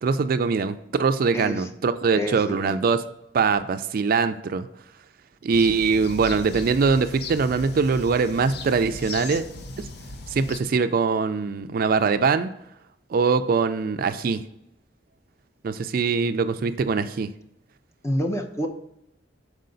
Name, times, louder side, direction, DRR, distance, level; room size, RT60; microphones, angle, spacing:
voice 1, 0.0-3.0 3.3-4.7 5.4-9.4 9.8-9.9 10.3-12.5 13.1-14.4 15.6-17.3, right 5 dB, 55° right, 11 dB, 0.4 m, -22 dB
voice 2, 1.3-1.7 2.1-2.7 18.0-18.7, equal, 15° left, 4 dB, 0.7 m, -28 dB
sound 1, 5.5-10.6, left 2 dB, 60° left, 0.6 m, -38 dB
6.5 x 4.8 x 3.9 m, 0.83 s
head